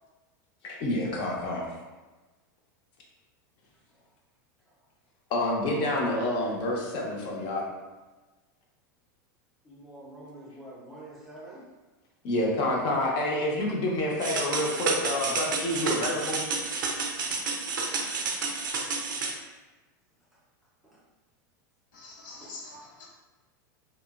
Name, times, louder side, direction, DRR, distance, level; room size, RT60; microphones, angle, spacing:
voice 1, 0.6-1.7 5.3-7.7 12.2-16.4, left 1 dB, 50° left, -1 dB, 0.7 m, -28 dB
voice 2, 9.6-11.7 20.3-20.4 20.8-21.0 22.4-22.5, right 1 dB, ahead, -6 dB, 0.7 m, -47 dB
sound 1, 14.2-19.3, right 4 dB, 90° right, 0.5 m, -30 dB
voice 3, 21.9-23.1, left 3 dB, 85° left, -5 dB, 0.8 m, -45 dB
2.9 x 2.0 x 2.3 m, 1.2 s
hypercardioid pair, 115°, 10 cm